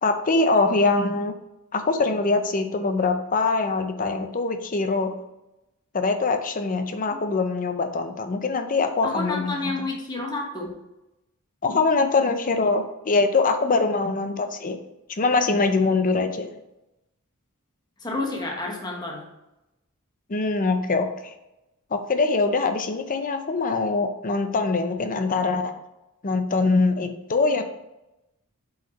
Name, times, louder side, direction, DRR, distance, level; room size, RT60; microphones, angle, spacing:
voice 1, 0.0-1.3 1.7-5.1 5.9-9.9 11.6-14.8 15.1-16.5 20.3-21.3 21.9-25.7 26.2-27.6, left 3 dB, 40° left, 7 dB, 0.7 m, -23 dB
voice 2, 9.0-10.8 18.0-19.3, left 2 dB, 20° left, -1 dB, 1.2 m, -30 dB
7.8 x 4.8 x 3.1 m, 0.94 s
head